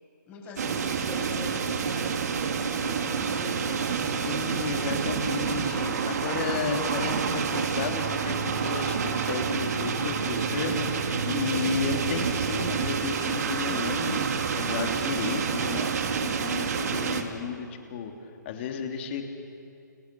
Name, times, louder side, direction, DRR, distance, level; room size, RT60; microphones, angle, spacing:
voice 1, 0.3-5.0, left 3 dB, 20° left, -2 dB, 8.0 m, -42 dB
sound 1, 0.6-17.2, right 6 dB, 55° right, 2.6 m, -28 dB
voice 2, 3.9-14.2 14.5-19.2, left 6 dB, 35° left, 3 dB, 3.3 m, -33 dB
29.5 x 28.0 x 7.1 m, 2.6 s
hypercardioid pair, 140°, 10 cm